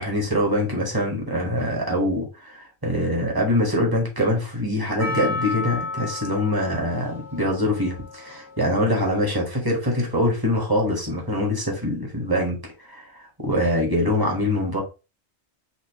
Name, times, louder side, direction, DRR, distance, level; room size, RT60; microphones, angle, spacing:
voice 1, 0.0-14.8, left 1 dB, 20° right, -1 dB, 1.5 m, -24 dB
Percussion, 5.0-9.4 10.0-10.1, left 3 dB, ahead, 1.0 m, -33 dB
5.8 x 2.9 x 3.0 m, 0.30 s
omnidirectional pair, 1.2 m